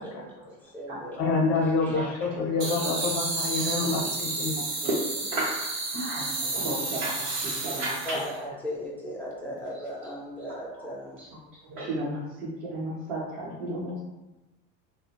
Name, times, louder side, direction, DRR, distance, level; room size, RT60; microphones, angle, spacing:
voice 1, 0.0-2.3 2.6-3.1 3.5-3.6 4.1-4.2 8.0-11.2, equal, 5° left, -5 dB, 0.3 m, -38 dB
voice 2, 1.2-4.6, left 3 dB, 50° left, 0 dB, 0.6 m, -27 dB
sound 1, 2.6-8.4, right 3 dB, 40° right, 0.6 m, -31 dB
voice 3, 4.6-5.6 5.9-8.2 11.7-14.0, right 1 dB, 70° right, -7 dB, 0.8 m, -33 dB
2.3 x 2.1 x 2.8 m, 1.1 s
cardioid pair, 145°, 39 cm